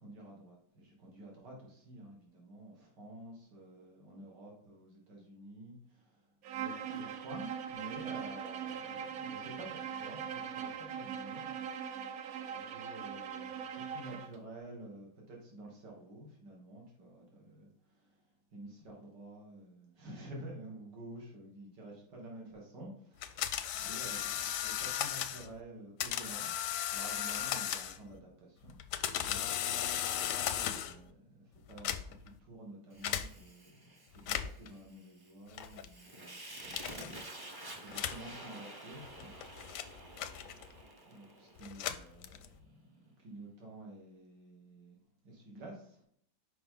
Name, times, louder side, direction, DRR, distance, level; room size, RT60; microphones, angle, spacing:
voice 1, 0.0-6.2 6.5-12.2 12.5-18.1 18.5-26.5 26.9-28.8 29.1-29.5 29.8-37.1 37.8-39.3 41.1-42.4 42.7-45.0 45.2-46.0, right 1 dB, 90° right, -2 dB, 2.3 m, -50 dB
Bowed string instrument, 6.4-14.3, right 8 dB, 70° right, 1.0 m, -41 dB
sound 1, 23.2-25.5 26.0-28.1 28.7-31.0 31.7-32.3 33.0-33.3 34.1-34.7 35.6-35.9 36.7-37.1 37.9-38.3 39.1-40.8 41.6-42.6, left 10 dB, 70° left, 0.8 m, -36 dB
Fire, 32.9-42.1, right 1 dB, 30° right, 0.4 m, -50 dB
5.9 x 5.1 x 3.7 m, 0.66 s
omnidirectional pair, 1.8 m